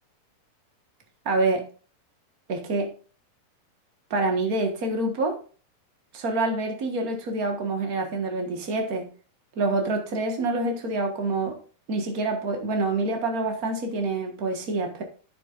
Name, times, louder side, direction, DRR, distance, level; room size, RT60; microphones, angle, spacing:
voice 1, 1.2-1.6 2.5-2.9 4.1-5.4 6.1-9.1 9.6-11.6 11.9-15.0, right 2 dB, 55° right, 0.9 m, -26 dB
11.0 x 7.4 x 2.5 m
omnidirectional pair, 4.1 m